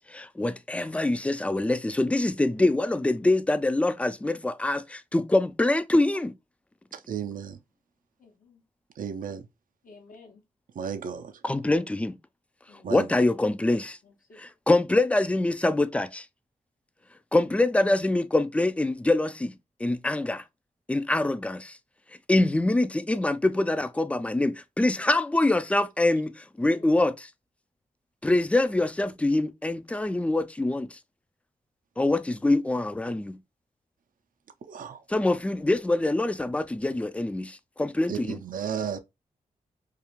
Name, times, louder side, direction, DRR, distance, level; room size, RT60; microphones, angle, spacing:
voice 1, 0.0-6.4 11.4-12.2 12.9-14.0 14.4-16.3 17.3-19.5 19.8-20.4 20.9-21.8 22.3-27.3 28.2-31.0 32.0-33.4 35.1-38.4, left 2 dB, 10° left, 0.3 m, -25 dB
voice 2, 6.9-7.6 9.0-9.4 10.7-11.3 12.8-13.1 34.7-35.0 38.1-39.0, right 7 dB, 70° right, 0.5 m, -33 dB
voice 3, 8.2-8.6 9.8-10.4 12.7-12.9 14.0-14.4 26.7-27.0, left 3 dB, 70° left, 0.8 m, -53 dB
2.4 x 2.4 x 2.9 m
cardioid pair, 45°, 15 cm